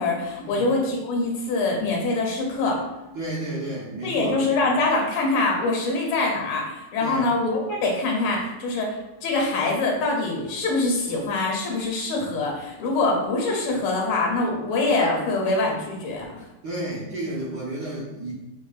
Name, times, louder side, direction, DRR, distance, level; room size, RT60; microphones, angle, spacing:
voice 1, 0.0-2.8 4.0-16.4, left 2 dB, 75° left, -1 dB, 1.6 m, -24 dB
voice 2, 3.1-4.3 7.0-7.3 16.6-18.3, right 1 dB, 70° right, -6 dB, 1.0 m, -31 dB
5.1 x 2.1 x 2.4 m, 1.0 s
omnidirectional pair, 2.4 m